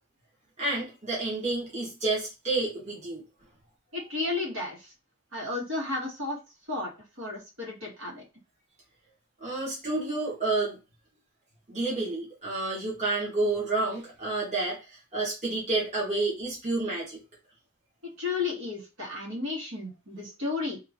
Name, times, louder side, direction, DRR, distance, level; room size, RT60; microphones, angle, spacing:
voice 1, 0.6-3.2 9.4-10.8 11.7-14.8 15.1-17.2, right 2 dB, 35° right, -5 dB, 1.3 m, -29 dB
voice 2, 3.9-4.9 5.3-6.4 6.7-6.9 7.2-8.2 18.2-20.8, left 3 dB, 65° right, -3 dB, 1.7 m, -33 dB
3.0 x 2.5 x 3.5 m, 0.28 s
head